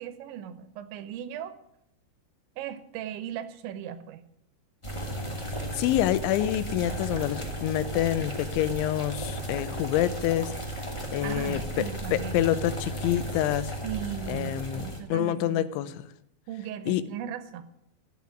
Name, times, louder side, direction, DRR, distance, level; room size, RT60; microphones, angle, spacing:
voice 1, 0.0-1.5 2.6-4.2 11.2-12.6 13.8-15.7 16.5-17.6, right 9 dB, 80° right, 12 dB, 3.3 m, -37 dB
sound 1, 4.8-15.0, right 1 dB, 15° left, 1.0 m, -35 dB
voice 2, 5.7-10.5 11.1-13.7 14.3-16.0 16.9-17.0, left 12 dB, 85° left, 14 dB, 3.2 m, -27 dB
14.5 x 8.5 x 8.3 m, 0.77 s
omnidirectional pair, 5.3 m